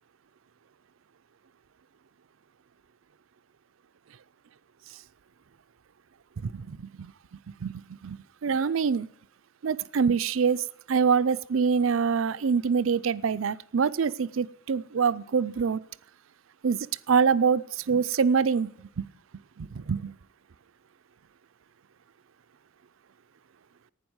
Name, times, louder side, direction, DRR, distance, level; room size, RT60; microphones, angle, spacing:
voice 1, 6.4-7.1 7.6-9.1 9.6-15.8 16.6-19.1 19.6-20.1, right 6 dB, 80° right, 16 dB, 0.5 m, -25 dB
11.5 x 9.5 x 7.9 m, 0.65 s
head